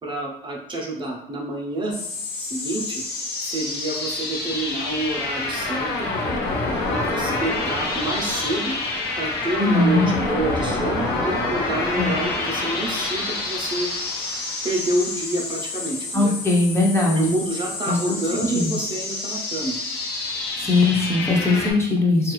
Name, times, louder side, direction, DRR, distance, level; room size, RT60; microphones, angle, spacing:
voice 1, 0.0-2.0 2.4-3.0 3.4-6.1 6.9-8.8 9.2-13.9 14.6-16.3 17.2-19.8 22.2-22.3, right 2 dB, 30° right, 0 dB, 0.6 m, -28 dB
sound 1, 1.9-21.7, left 3 dB, 75° left, 0.7 m, -27 dB
voice 2, 9.6-10.1 12.0-12.1 16.1-17.3 17.9-18.7 20.6-22.3, left 2 dB, 15° left, -2 dB, 0.6 m, -20 dB
2.9 x 2.4 x 3.0 m, 0.75 s
cardioid pair, 110°, 17 cm